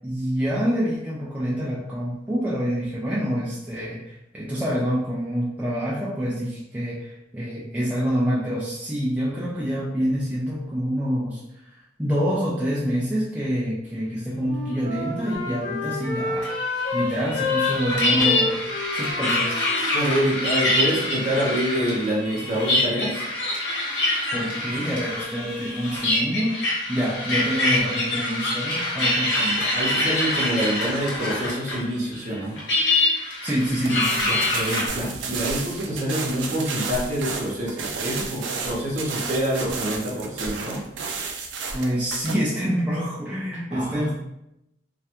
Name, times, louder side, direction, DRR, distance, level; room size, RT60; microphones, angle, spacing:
voice 1, 0.0-18.6 18.9-19.5 24.3-26.5 26.9-29.5 33.4-34.1 41.7-44.1, equal, 10° right, -7 dB, 0.3 m, -26 dB
Wind instrument woodwind instrument, 14.3-17.0 17.3-21.0, left 3 dB, 45° left, 1.1 m, -30 dB
sound 1, 16.4-31.9 32.1-34.9, left 2 dB, 70° left, 0.8 m, -25 dB
voice 2, 19.9-23.2 29.4-32.6 34.2-40.8 43.7-44.1, equal, 40° right, -4 dB, 0.7 m, -26 dB
sound 2, 33.6-42.3, right 4 dB, 80° right, 0.4 m, -32 dB
2.3 x 2.2 x 2.8 m, 0.85 s
head